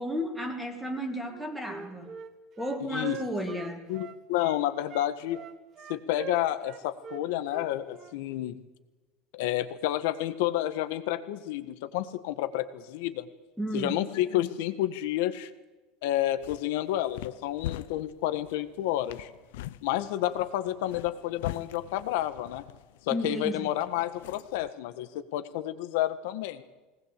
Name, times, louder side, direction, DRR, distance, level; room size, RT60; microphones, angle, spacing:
voice 1, 0.0-2.2 2.6-3.9 13.6-14.0 23.1-23.7, equal, ahead, 4 dB, 2.2 m, -33 dB
Wind instrument woodwind instrument, 1.2-4.6 4.9-8.2, right 8 dB, 25° right, 1.2 m, -43 dB
voice 2, 2.8-3.2 3.9-5.4 5.9-8.6 9.3-13.3 13.7-15.5 16.0-19.3 19.8-22.6 23.1-26.6, left 13 dB, 65° left, 11 dB, 1.6 m, -30 dB
sound 1, 16.2-24.7, left 14 dB, 90° left, 0.8 m, -43 dB
21.0 x 19.0 x 8.5 m, 1.2 s
cardioid pair, 180°, 0 cm